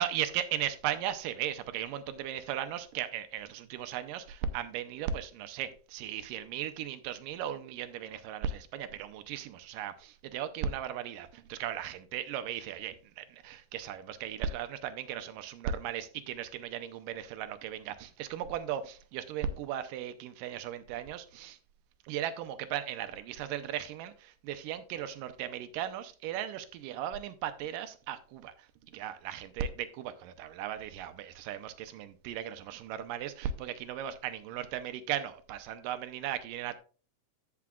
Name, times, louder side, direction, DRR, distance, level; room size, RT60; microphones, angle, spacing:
voice 1, 0.0-21.6 22.1-36.8, right 9 dB, 80° right, 2.2 m, -37 dB
14.5 x 5.9 x 2.4 m
omnidirectional pair, 4.1 m